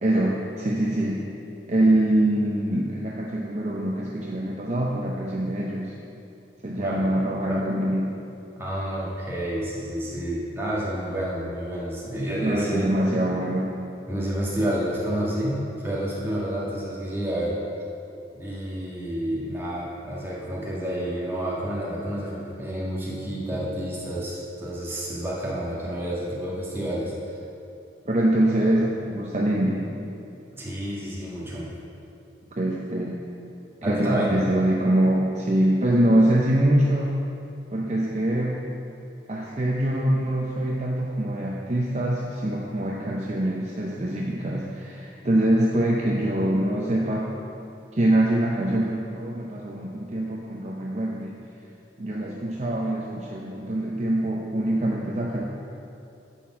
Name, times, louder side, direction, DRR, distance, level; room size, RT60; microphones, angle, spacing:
voice 1, 0.0-1.2 1.7-5.9 6.6-8.1 12.4-13.7 28.1-29.9 32.6-33.2 33.8-37.2 37.7-38.6 39.3-47.3 47.9-51.4 52.0-55.4, right 1 dB, 35° right, -2 dB, 0.6 m, -24 dB
voice 2, 6.8-7.1 7.5-7.6 8.5-12.9 14.1-17.6 18.3-27.4 30.5-31.7 33.8-34.4, right 1 dB, 10° right, -6 dB, 1.6 m, -29 dB
9.8 x 4.3 x 7.2 m, 2.8 s
head